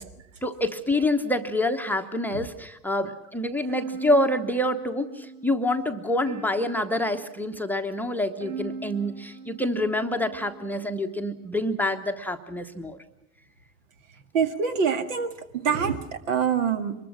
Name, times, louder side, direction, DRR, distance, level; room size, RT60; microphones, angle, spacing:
voice 1, 0.4-13.0, left 1 dB, 5° left, 10 dB, 1.0 m, -27 dB
sound 1, 3.7-10.8, right 4 dB, 40° right, 6.4 m, -41 dB
voice 2, 14.3-17.0, right 6 dB, 60° right, 9 dB, 1.9 m, -25 dB
24.0 x 21.0 x 6.2 m, 0.88 s
figure-of-eight pair, 80°, 44 cm